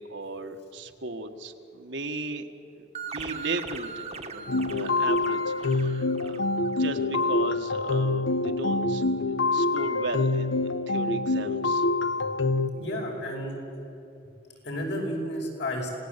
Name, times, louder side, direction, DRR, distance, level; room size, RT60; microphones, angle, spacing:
voice 1, 0.0-2.4 3.1-6.5 6.8-9.0 9.5-11.9, right 2 dB, 70° right, 5 dB, 1.6 m, -36 dB
sound 1, 2.9-7.3, right 5 dB, 35° right, 1.4 m, -41 dB
sound 2, 4.5-12.7, left 2 dB, 80° left, 0.8 m, -26 dB
voice 2, 12.7-13.6 14.6-15.9, equal, 65° left, -1 dB, 5.7 m, -32 dB
26.5 x 18.5 x 8.3 m, 2.8 s
head